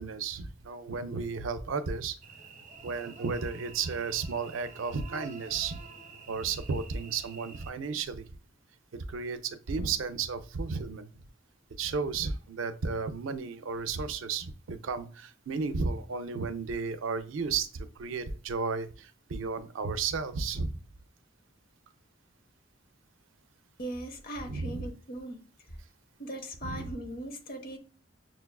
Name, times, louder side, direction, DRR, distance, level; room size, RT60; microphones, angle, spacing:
voice 1, 0.0-2.1 2.8-5.8 6.3-8.2 9.1-11.1 11.8-20.7 24.4-24.9 26.6-26.9, right 5 dB, 75° right, 0.5 m, -33 dB
Cricket / Buzz, 2.2-7.7, right 5 dB, 35° right, 0.7 m, -48 dB
voice 2, 23.8-25.4 26.2-27.8, right 1 dB, 50° left, 0.8 m, -39 dB
6.1 x 2.3 x 2.2 m
head